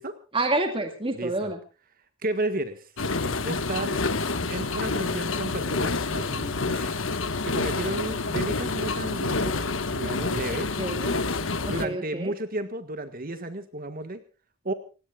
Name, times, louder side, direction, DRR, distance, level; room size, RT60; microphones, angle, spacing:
voice 1, 0.3-1.6 10.8-11.2 11.6-12.3, right 2 dB, 25° right, 5 dB, 2.0 m, -28 dB
voice 2, 1.1-1.5 2.2-2.8 3.4-4.0 4.5-7.0 7.5-9.5 9.9-10.7 11.7-14.2 14.6-14.7, right 2 dB, 45° right, 9 dB, 1.7 m, -32 dB
sound 1, 3.0-11.9, left 3 dB, 70° left, 1.6 m, -28 dB
29.0 x 17.0 x 2.4 m, 0.34 s
head